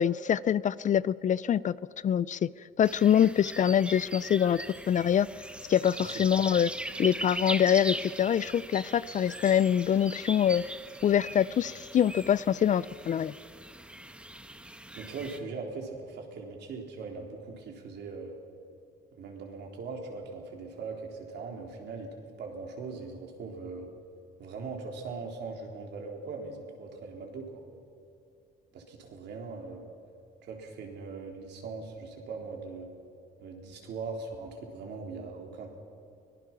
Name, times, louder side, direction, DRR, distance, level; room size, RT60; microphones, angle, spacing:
voice 1, 0.0-1.8 2.0-2.5 2.8-5.3 5.7-6.7 7.0-10.6 11.0-13.3, left 9 dB, 45° left, 19 dB, 0.5 m, -25 dB
sound 1, 2.8-15.4, right 1 dB, 5° right, 1.3 m, -40 dB
voice 2, 6.0-6.3 15.0-18.3 19.1-22.1 22.4-23.9 24.4-27.6 28.7-29.9 30.4-32.9 33.4-35.7, right 4 dB, 70° right, 1 dB, 3.9 m, -40 dB
24.0 x 18.5 x 6.0 m, 2.6 s
cardioid pair, 90°, 18 cm